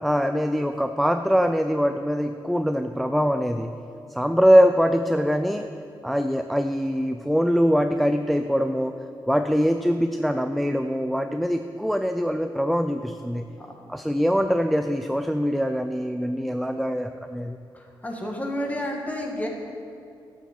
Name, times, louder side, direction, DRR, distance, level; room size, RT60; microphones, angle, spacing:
voice 1, 0.0-3.7 4.1-5.7 6.0-8.9 9.3-13.5 13.9-17.6, equal, ahead, 7 dB, 0.4 m, -23 dB
voice 2, 17.7-19.5, equal, 20° left, 1 dB, 1.8 m, -30 dB
12.5 x 8.4 x 6.0 m, 2.5 s
wide cardioid pair, 120°, 8 cm